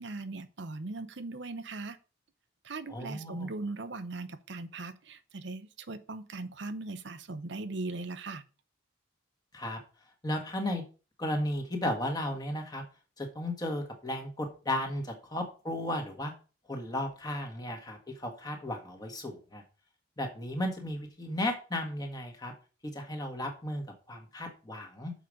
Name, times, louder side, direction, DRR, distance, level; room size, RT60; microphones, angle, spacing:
voice 1, 0.0-2.0 2.6-8.5, right 3 dB, 60° right, 11 dB, 0.7 m, -39 dB
voice 2, 2.9-3.5 9.5-9.8 10.2-10.8 11.2-12.8 13.2-16.3 16.7-19.6 20.2-22.5 22.9-25.1, left 1 dB, 20° left, 2 dB, 1.6 m, -34 dB
7.0 x 5.0 x 6.3 m, 0.34 s
head